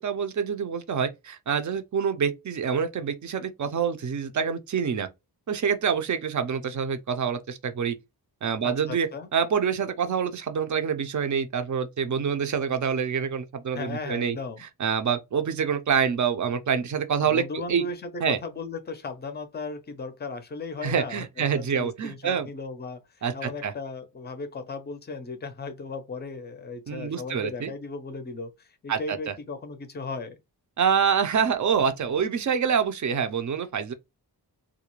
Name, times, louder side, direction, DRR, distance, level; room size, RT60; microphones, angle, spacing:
voice 1, 0.0-5.1 5.5-8.0 8.4-14.4 14.8-17.8 18.2-18.4 20.8-22.5 23.2-23.7 26.9-27.7 28.9-29.3 30.8-33.9, right 7 dB, 50° right, 0.4 m, -26 dB
voice 2, 8.6-9.3 13.7-14.6 17.2-30.4, left 3 dB, 25° left, 0.4 m, -36 dB
2.4 x 2.1 x 2.9 m
wide cardioid pair, 120°, 40 cm